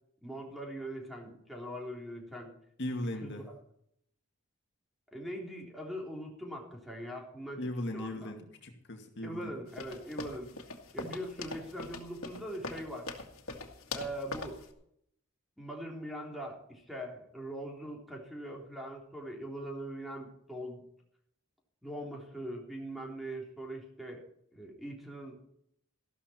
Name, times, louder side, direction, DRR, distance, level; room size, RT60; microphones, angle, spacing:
voice 1, 0.2-2.5 3.2-3.5 5.1-7.6 7.9-8.4 9.2-10.5 10.9-13.1 13.9-14.6 15.6-20.8 21.8-24.2 24.5-25.4, right 1 dB, ahead, -1 dB, 3.5 m, -41 dB
voice 2, 2.8-3.4 7.6-9.5, left 1 dB, 60° left, 3 dB, 2.1 m, -38 dB
sound 1, 9.7-14.7, left 3 dB, 85° left, 2.2 m, -42 dB
14.0 x 12.5 x 4.5 m, 0.72 s
head